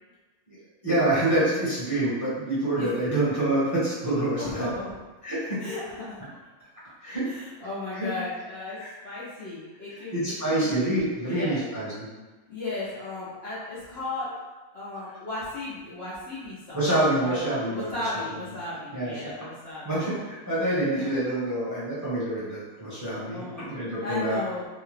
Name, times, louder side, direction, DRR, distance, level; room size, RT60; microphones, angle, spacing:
voice 1, 0.8-4.7 5.2-5.6 7.0-7.3 7.9-8.1 8.8-8.9 10.1-12.1 16.7-17.9 18.9-19.3 19.8-24.4, right 1 dB, 15° right, -11 dB, 0.8 m, -26 dB
voice 2, 4.4-4.9 5.6-6.2 7.2-8.8 9.0-10.7 11.2-11.7 12.5-14.4 14.7-16.8 17.2-17.4 17.7-20.0 20.9-21.1 23.3-23.6 24.0-24.7, left 2 dB, 55° left, -8 dB, 0.8 m, -35 dB
2.8 x 2.2 x 3.2 m, 1.3 s
omnidirectional pair, 1.4 m